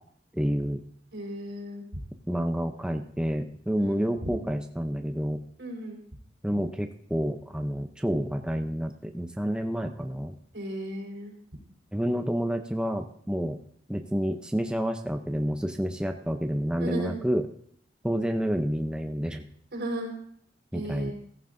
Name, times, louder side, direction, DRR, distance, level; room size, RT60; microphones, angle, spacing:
voice 1, 0.3-0.8 2.3-5.4 6.4-10.3 11.9-13.6 13.9-17.5 18.0-19.4 20.7-21.1, equal, 5° right, 5 dB, 0.6 m, -29 dB
voice 2, 1.1-1.8 3.8-3.9 5.6-6.0 10.5-11.4 16.8-17.1 19.7-20.1 20.7-21.1, equal, 75° right, 0 dB, 4.3 m, -35 dB
15.5 x 14.5 x 2.6 m, 0.63 s
head